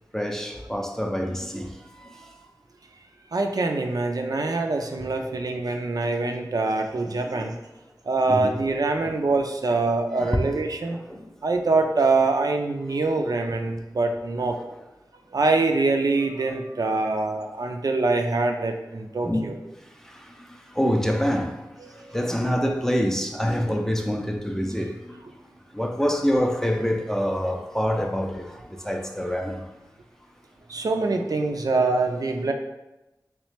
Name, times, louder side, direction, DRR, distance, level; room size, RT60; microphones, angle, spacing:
voice 1, 0.1-2.3 5.1-5.3 7.0-7.5 8.3-8.6 9.0-9.2 10.2-10.4 10.9-11.3 19.2-19.5 20.0-21.6 21.9-25.2 25.7-29.6, equal, 5° left, 0.4 m, -27 dB
voice 2, 3.3-7.5 8.1-11.0 11.4-14.6 15.3-19.6 21.8-22.1 30.7-32.5, right 3 dB, 60° right, 0.4 m, -24 dB
3.3 x 3.1 x 3.2 m
wide cardioid pair, 60°, 7 cm